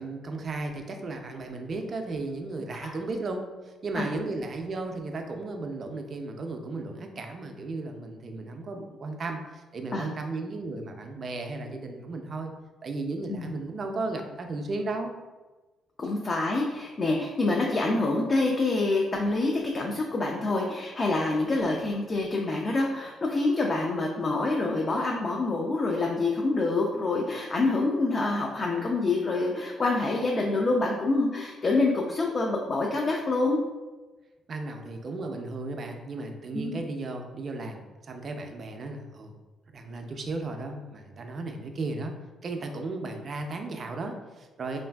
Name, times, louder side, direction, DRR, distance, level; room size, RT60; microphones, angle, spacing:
voice 1, 0.0-12.5 12.8-15.1 34.5-39.4 39.7-42.1 42.4-44.8, right 3 dB, 45° right, 4 dB, 0.3 m, -35 dB
voice 2, 16.0-33.6 36.5-36.8, left 2 dB, 40° left, -1 dB, 0.3 m, -26 dB
3.1 x 2.5 x 2.2 m, 1.2 s
cardioid pair, 90°, 0 cm